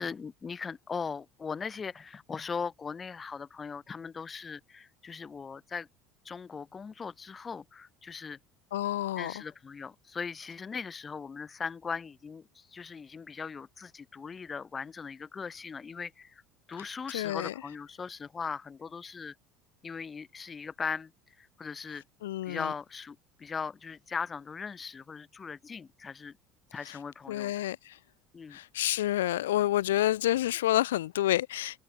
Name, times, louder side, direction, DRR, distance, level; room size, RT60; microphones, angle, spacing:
voice 1, 0.0-5.9 6.2-8.4 9.2-16.4 16.7-19.3 19.8-21.1 21.4-22.0 22.4-26.4 26.7-27.5 28.3-28.6, left 5 dB, 30° left, 1.2 m, -39 dB
voice 2, 8.7-9.3 16.8-16.9 17.1-17.5 22.2-22.7 26.9-27.0 27.3-28.0 28.5-31.8, left 14 dB, 90° left, 0.3 m, -29 dB
hypercardioid pair, 85°, 0 cm